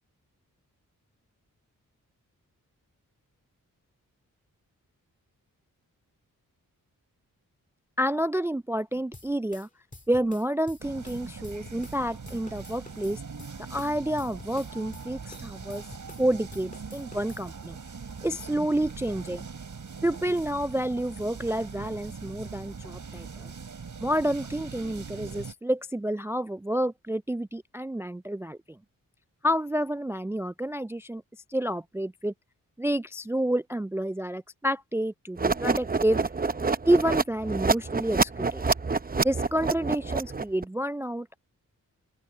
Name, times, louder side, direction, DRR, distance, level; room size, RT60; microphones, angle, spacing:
voice 1, 8.0-9.7 10.1-13.2 13.7-15.8 16.2-17.8 18.2-19.5 20.0-23.5 24.0-28.8 29.4-31.2 31.5-32.3 32.8-36.2 36.8-38.6 39.2-41.4, right 1 dB, 10° right, 0.3 m, -29 dB
sound 1, 9.1-12.0 12.3-16.3 16.5-17.4, left 2 dB, 25° left, 2.0 m, -48 dB
sound 2, 10.8-25.5, right 5 dB, 60° right, 4.1 m, -41 dB
sound 3, 35.4-40.6, right 4 dB, 25° right, 0.8 m, -27 dB
open air
cardioid pair, 65°, 34 cm